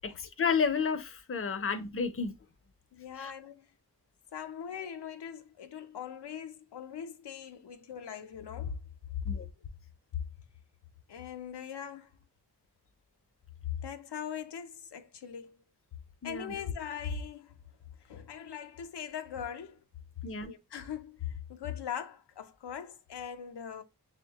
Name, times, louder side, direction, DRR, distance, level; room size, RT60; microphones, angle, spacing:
voice 1, 0.0-2.3 3.2-3.3 9.3-9.5 16.2-16.5 20.2-20.5, left 5 dB, 35° left, 0.5 m, -31 dB
voice 2, 2.9-3.7 4.3-8.8 11.1-12.1 13.8-15.6 16.2-17.5 18.0-19.8 20.5-23.8, left 8 dB, 85° left, 0.6 m, -40 dB
6.1 x 2.1 x 2.8 m
wide cardioid pair, 65°, 40 cm